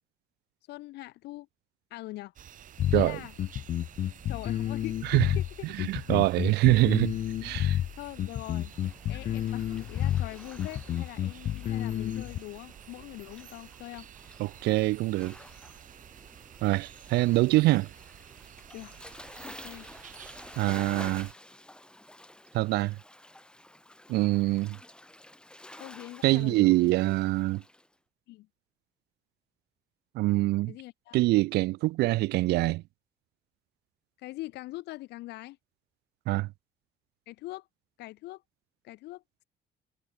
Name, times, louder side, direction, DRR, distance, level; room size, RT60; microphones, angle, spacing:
voice 1, 0.7-1.5 1.9-2.3 2.9-3.3 4.3-6.2 7.9-8.7 9.1-14.1 17.7-17.8 18.7-18.9 19.4-19.9 25.8-27.0 28.3-28.5 30.7-31.2 34.2-35.6 37.3-37.7 38.0-38.4 38.8-39.4, left 18 dB, 85° left, 3.3 m, -43 dB
sound 1, 2.4-21.3, right 10 dB, 50° right, 1.9 m, -51 dB
sound 2, 2.8-12.4, left 11 dB, 45° left, 0.4 m, -30 dB
voice 2, 5.8-7.1 7.4-7.8 14.4-15.4 16.6-17.9 20.6-21.3 22.5-23.0 24.1-24.8 26.2-27.6 30.1-30.7 31.1-32.8 36.3-36.5, right 19 dB, 75° right, 0.4 m, -24 dB
Waves surf, 8.4-27.9, left 1 dB, 5° left, 1.7 m, -51 dB
cardioid pair, 110°, 17 cm